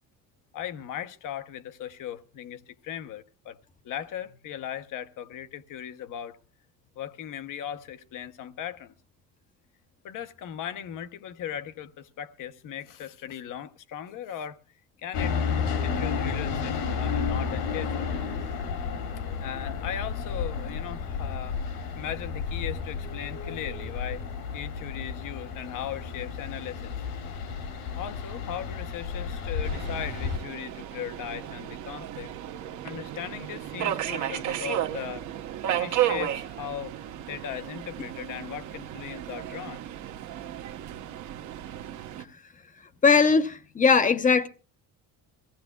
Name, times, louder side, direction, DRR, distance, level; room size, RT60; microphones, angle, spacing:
voice 1, 0.5-3.6 3.8-6.4 6.9-8.9 10.0-14.6 15.0-15.5 15.8-18.2 19.4-21.6 21.9-24.2 24.5-27.0 28.0-32.3 32.8-35.3 35.6-37.0 37.3-39.8, left 10 dB, 55° left, 0.9 m, -38 dB
sound 1, 15.1-30.4, left 6 dB, 75° left, 2.4 m, -32 dB
Subway metro underground, 29.6-42.2, right 12 dB, 50° right, 1.0 m, -33 dB
voice 2, 43.0-44.5, left 5 dB, 20° left, 0.7 m, -20 dB
23.0 x 16.0 x 2.2 m
cardioid pair, 165°, 37 cm